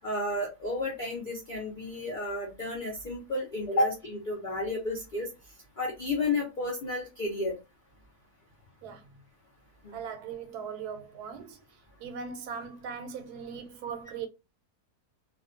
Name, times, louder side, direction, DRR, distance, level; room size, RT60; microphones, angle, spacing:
voice 1, 0.0-5.3 5.8-7.5 9.8-10.0, left 2 dB, 65° left, 0.4 m, -31 dB
voice 2, 9.9-11.6 12.0-14.3, right 6 dB, 85° right, 1.1 m, -39 dB
2.5 x 2.2 x 2.4 m
omnidirectional pair, 1.6 m